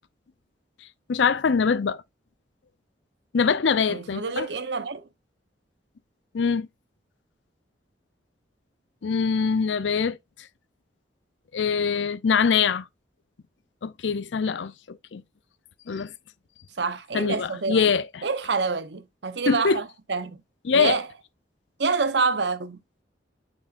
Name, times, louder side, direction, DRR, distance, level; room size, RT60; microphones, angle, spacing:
voice 1, 1.1-2.0 3.3-4.5 6.3-6.7 9.0-10.2 11.5-12.9 13.8-15.2 15.9-16.1 17.1-18.2 19.5-19.8 20.6-21.0, left 5 dB, 85° left, 0.5 m, -23 dB
voice 2, 3.9-5.0 16.8-17.9 18.2-20.4 20.7-21.1 21.8-22.8, right 4 dB, 70° right, 0.8 m, -27 dB
8.3 x 5.2 x 2.4 m
head